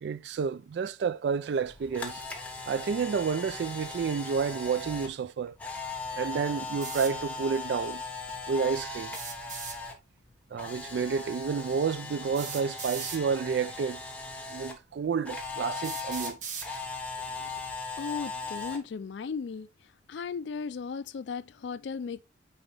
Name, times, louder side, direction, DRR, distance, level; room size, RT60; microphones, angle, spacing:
voice 1, 0.0-2.2 2.7-5.6 6.2-8.0 8.5-9.1 10.5-14.0 14.5-16.4, right 6 dB, 70° right, 0.3 m, -30 dB
Camera, 1.6-9.9 10.2-14.7 15.3-18.8, left 3 dB, 10° left, 1.3 m, -38 dB
sound 1, 6.8-7.1 9.1-9.8 11.2-11.3 12.3-13.2 14.2-14.3 15.0-15.1 15.8-16.7, right 6 dB, 45° right, 1.2 m, -38 dB
voice 2, 18.0-19.7 20.1-22.2, left 5 dB, 75° left, 0.4 m, -36 dB
9.0 x 3.9 x 3.3 m
head